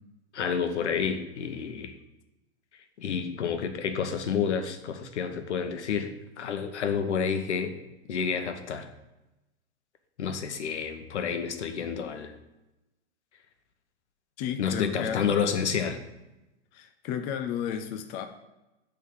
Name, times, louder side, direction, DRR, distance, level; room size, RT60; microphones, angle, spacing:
voice 1, 0.3-1.9 3.0-7.7 8.1-8.9 10.2-12.3 14.6-16.0, left 6 dB, 80° left, 8 dB, 1.2 m, -29 dB
voice 2, 14.4-15.2 16.7-18.3, left 8 dB, 30° left, 7 dB, 0.6 m, -33 dB
10.0 x 3.7 x 6.2 m, 0.99 s
hypercardioid pair, 140°, 34 cm